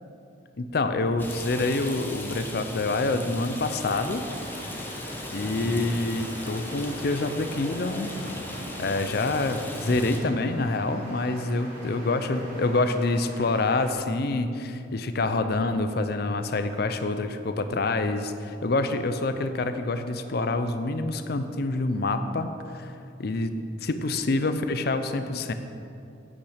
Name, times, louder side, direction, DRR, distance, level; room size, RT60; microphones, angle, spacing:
voice 1, 0.6-4.2 4.7-4.8 5.3-8.1 8.8-22.9 23.2-23.5 23.8-25.5, left 2 dB, 55° left, 9 dB, 0.6 m, -27 dB
Rain, 1.2-10.2, left 1 dB, 10° left, 1.0 m, -37 dB
sound 1, 3.7-13.9, right 1 dB, 50° right, 2.5 m, -43 dB
9.0 x 8.6 x 5.0 m, 2.6 s
head